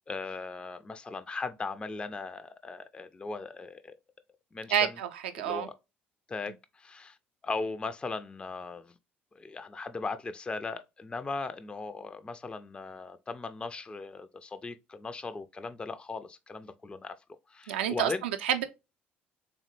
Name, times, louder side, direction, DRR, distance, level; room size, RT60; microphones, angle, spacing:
voice 1, 0.1-3.9 4.5-5.0 5.4-5.7 6.3-7.2 7.4-8.9 9.4-17.2 17.5-18.2, left 3 dB, 15° left, 0.3 m, -38 dB
voice 2, 4.7-5.7 17.7-18.6, right 9 dB, 70° right, 0.4 m, -29 dB
3.6 x 2.1 x 3.0 m
figure-of-eight pair, 55°, 6 cm